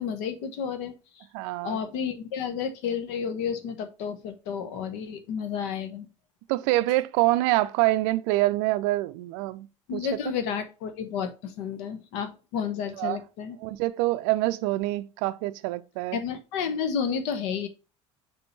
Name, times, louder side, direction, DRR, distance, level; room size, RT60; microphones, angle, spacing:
voice 1, 0.0-1.2 1.6-6.1 9.9-13.6 16.1-17.7, left 7 dB, 60° left, 1.1 m, -31 dB
voice 2, 1.3-1.8 6.5-9.7 9.9-10.0 13.0-13.2 13.6-16.2, right 18 dB, 55° right, 0.5 m, -25 dB
6.7 x 3.7 x 4.1 m
figure-of-eight pair, 60°, 17 cm